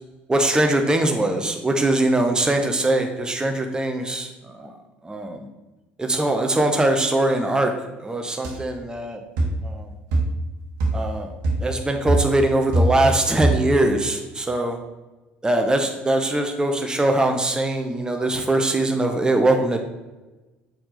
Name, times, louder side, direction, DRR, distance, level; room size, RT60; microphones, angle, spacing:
voice 1, 0.3-4.7 5.0-5.5 6.0-7.7 8.0-9.2 9.6-9.9 10.9-11.3 11.6-14.8 15.4-19.8, right 1 dB, 15° right, 4 dB, 0.7 m, -22 dB
sound 1, 8.4-8.6 9.4-9.6 10.1-10.5 10.8-11.1 11.4-11.7 12.1-13.2 13.4-13.8, right 2 dB, 65° right, 1.2 m, -22 dB
5.8 x 4.4 x 3.8 m, 1.1 s
figure-of-eight pair, 60°, 6 cm